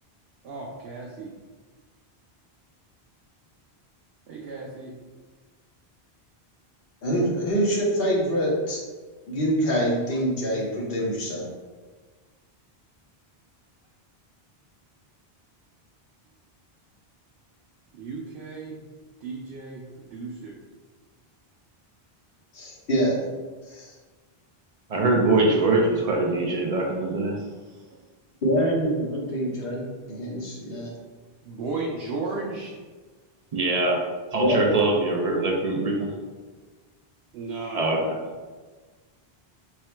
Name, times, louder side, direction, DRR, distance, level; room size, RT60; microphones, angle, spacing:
voice 1, 0.4-1.3 4.3-4.9 17.9-18.8 19.2-20.5 31.4-32.8 37.3-37.8, right 3 dB, 85° right, -2 dB, 0.8 m, -34 dB
voice 2, 7.0-8.8 9.3-11.4 22.5-23.2 23.7-23.9 28.4-30.9 34.4-34.6, equal, 65° left, -4 dB, 1.1 m, -25 dB
voice 3, 24.9-27.4 33.5-34.0 34.3-36.1 37.7-38.2, right 2 dB, 45° right, 0 dB, 0.5 m, -23 dB
3.5 x 2.1 x 4.3 m, 1.4 s
omnidirectional pair, 1.0 m